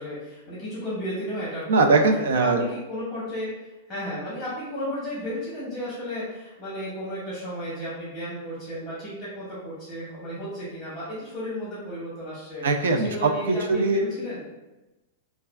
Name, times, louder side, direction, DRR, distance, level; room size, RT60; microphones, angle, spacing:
voice 1, 0.0-2.1 2.4-3.5 3.9-12.6 13.0-14.4, equal, 5° left, -9 dB, 0.9 m, -34 dB
voice 2, 1.7-2.6 12.6-14.1, right 3 dB, 85° right, 5 dB, 0.4 m, -21 dB
3.1 x 2.2 x 2.3 m, 1.0 s
supercardioid pair, 165°, 0 cm